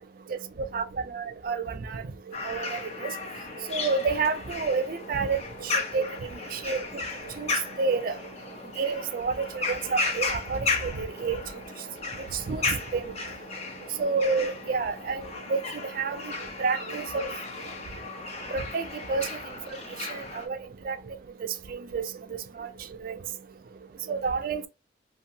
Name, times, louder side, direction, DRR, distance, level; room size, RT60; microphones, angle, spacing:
voice 1, 1.1-2.0 2.4-3.1 3.7-6.1 6.5-6.8 7.4-7.5 7.8-8.1 8.8-11.4 12.3-13.1 14.0-15.6 16.0-16.3 16.6-17.3 18.5-19.3 20.1-20.6 20.8-21.0 21.7-22.1 22.6-22.7 23.0-23.1 24.1-24.7, right 4 dB, 45° right, 0.3 m, -29 dB
sound 1, 2.3-20.5, left 3 dB, 35° left, 0.5 m, -35 dB
2.7 x 2.2 x 2.6 m
head